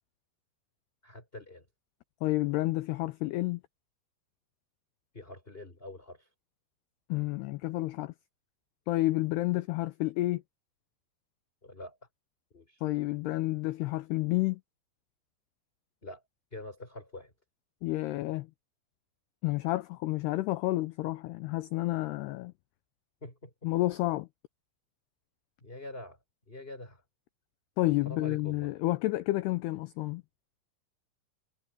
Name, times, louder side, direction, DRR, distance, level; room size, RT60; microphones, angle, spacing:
voice 1, 1.0-1.6 5.1-6.3 11.6-12.0 12.5-12.8 16.0-16.2 16.5-17.3 23.2-23.7 25.6-26.2 26.5-27.0 28.0-28.7, left 2 dB, 10° left, 5.1 m, -45 dB
voice 2, 2.2-3.6 7.1-8.1 8.9-10.4 12.8-14.6 17.8-18.5 19.4-22.5 23.6-24.3 27.8-30.2, left 18 dB, 90° left, 2.3 m, -30 dB
omnidirectional pair, 5.5 m